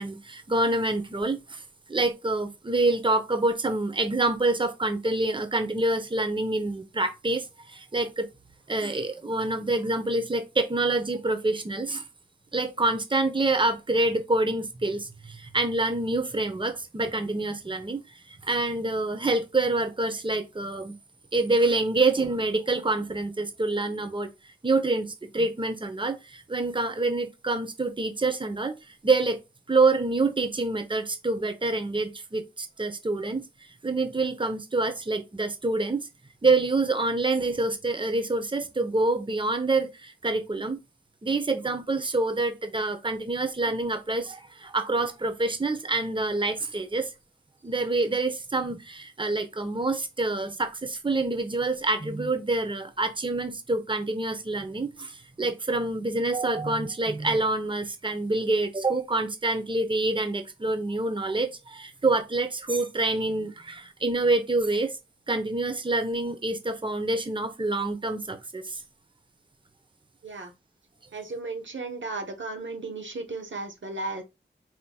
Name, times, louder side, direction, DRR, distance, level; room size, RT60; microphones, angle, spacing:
voice 1, 0.0-1.6 1.9-8.3 8.7-12.0 12.5-20.9 21.3-29.4 29.7-36.1 36.4-40.8 41.2-47.1 47.6-65.0 65.3-68.8, right 2 dB, 25° right, 0.8 m, -27 dB
voice 2, 71.1-74.2, right 3 dB, 80° right, 1.0 m, -35 dB
4.5 x 3.9 x 2.3 m
wide cardioid pair, 40°, 19 cm